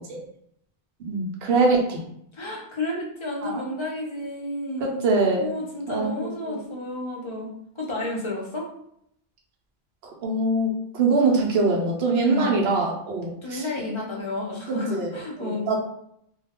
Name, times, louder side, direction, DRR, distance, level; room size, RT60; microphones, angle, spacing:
voice 1, 1.0-2.0 3.4-3.6 4.8-5.5 5.9-6.6 10.2-13.8 14.9-15.1 15.4-15.8, right 3 dB, 85° right, 0 dB, 0.9 m, -23 dB
voice 2, 2.3-5.0 5.4-7.5 7.8-8.7 12.2-12.6 13.4-15.7, left 2 dB, 35° left, -2 dB, 0.6 m, -31 dB
2.3 x 2.2 x 3.5 m, 0.73 s
omnidirectional pair, 1.0 m